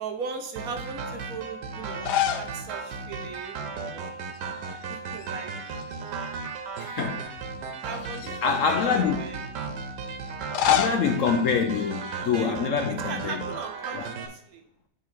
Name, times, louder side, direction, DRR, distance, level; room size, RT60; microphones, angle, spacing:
voice 1, 0.0-4.1 4.9-5.5 7.7-9.4 12.3-12.6 13.0-14.6, right 5 dB, 65° right, 1.2 m, -38 dB
sound 1, 0.6-14.3, right 4 dB, 90° right, 1.4 m, -35 dB
sound 2, 1.9-2.6 2.9-3.0 4.3-4.8 5.1-6.3 6.9-7.0 7.9-9.0 10.3-12.5, left 10 dB, 80° left, 1.2 m, -30 dB
voice 2, 6.8-7.3 8.4-9.2 10.6-13.4 13.9-14.1, left 6 dB, 65° left, 0.9 m, -25 dB
6.1 x 3.8 x 5.8 m
omnidirectional pair, 1.8 m